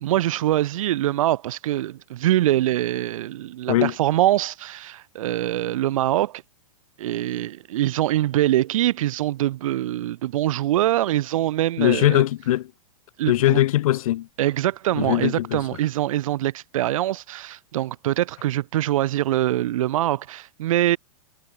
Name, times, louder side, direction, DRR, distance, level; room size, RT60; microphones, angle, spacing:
voice 1, 0.0-6.4 7.0-12.2 13.2-13.6 14.4-21.0, right 14 dB, 65° right, 0.8 m, -23 dB
voice 2, 11.8-12.7 13.3-14.3 14.9-15.6, left 14 dB, 70° left, 0.5 m, -20 dB
hypercardioid pair, 150°, 18 cm